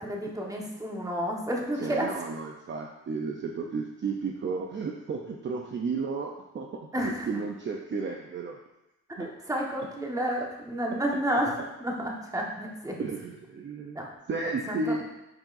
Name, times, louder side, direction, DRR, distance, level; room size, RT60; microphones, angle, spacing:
voice 1, 0.0-2.1 6.9-7.4 9.2-11.5 11.8-13.0 13.9-14.1 14.7-14.9, equal, 10° right, -1 dB, 1.4 m, -31 dB
voice 2, 1.8-6.7 7.0-8.6 9.2-9.3 10.9-11.0 13.0-15.2, right 4 dB, 40° right, 1 dB, 0.7 m, -33 dB
9.6 x 4.5 x 2.6 m, 0.97 s
cardioid pair, 90°, 30 cm